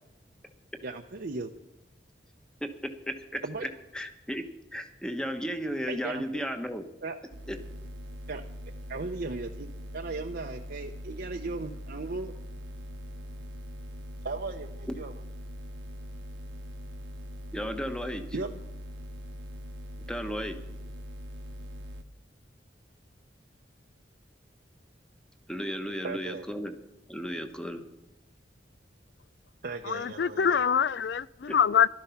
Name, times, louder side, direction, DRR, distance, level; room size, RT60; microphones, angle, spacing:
voice 1, 0.8-1.5 3.4-3.7 5.9-6.2 7.0-7.2 8.3-8.4 8.9-9.7 9.9-12.3 14.2-15.1 18.3-18.6 26.0-26.4 29.6-30.6, right 3 dB, 60° right, 3 dB, 0.8 m, -36 dB
voice 2, 3.1-3.7 3.9-4.4 4.7-6.8 7.5-7.6 14.9-15.0 17.5-18.2 20.1-20.6 25.5-26.7 27.1-27.8 31.5-31.6, equal, 5° left, 7 dB, 1.2 m, -34 dB
sound 1, 7.3-22.0, equal, 85° right, 1.3 m, -42 dB
voice 3, 29.9-31.9, left 7 dB, 70° left, 20 dB, 0.4 m, -25 dB
15.0 x 12.5 x 5.8 m, 0.90 s
head